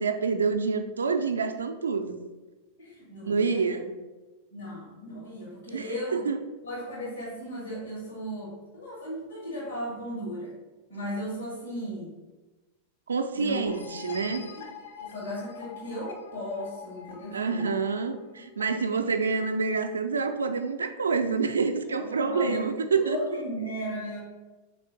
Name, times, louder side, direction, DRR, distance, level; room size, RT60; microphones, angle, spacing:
voice 1, 0.0-2.2 3.2-3.9 5.7-6.4 13.1-14.4 17.3-23.4, right 4 dB, 70° right, 7 dB, 0.4 m, -27 dB
voice 2, 2.8-3.6 4.5-6.2 6.6-10.5 10.9-12.1 13.3-13.6 14.3-14.4 15.0-17.7 18.6-19.0 21.9-22.6 22.9-24.2, equal, 85° left, -8 dB, 1.4 m, -36 dB
sound 1, 13.7-19.1, left 6 dB, 60° left, 0.5 m, -45 dB
3.7 x 3.2 x 3.8 m, 1.2 s
figure-of-eight pair, 90°, 0 cm